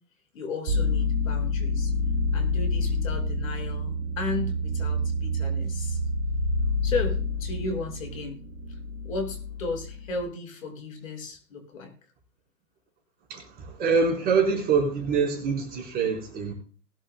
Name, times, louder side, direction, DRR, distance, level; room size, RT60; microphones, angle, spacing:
voice 1, 0.3-1.9 2.3-6.0 6.8-8.4 9.0-11.9, left 3 dB, 55° left, 3 dB, 5.8 m, -34 dB
sound 1, 0.7-10.2, left 2 dB, 40° right, 2.3 m, -28 dB
voice 2, 13.3-16.5, right 5 dB, 20° right, 0 dB, 4.5 m, -25 dB
20.5 x 11.0 x 2.2 m, 0.41 s
hypercardioid pair, 130°, 48 cm